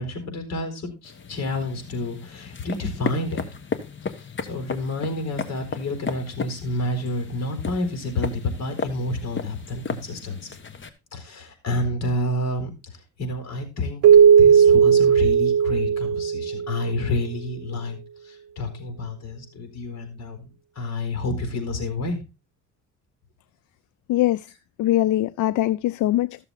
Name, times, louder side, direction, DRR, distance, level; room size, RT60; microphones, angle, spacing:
voice 1, 0.0-3.5 4.2-10.5 11.1-14.0 14.4-22.2, left 2 dB, 60° left, 4.2 m, -29 dB
sound 1, 1.0-10.9, left 5 dB, 40° left, 1.4 m, -35 dB
Keyboard (musical), 14.0-17.0, right 7 dB, 75° right, 0.7 m, -16 dB
voice 2, 24.1-24.4 24.8-26.4, left 14 dB, 75° left, 0.5 m, -22 dB
14.0 x 7.0 x 4.0 m
cardioid pair, 90°, 30 cm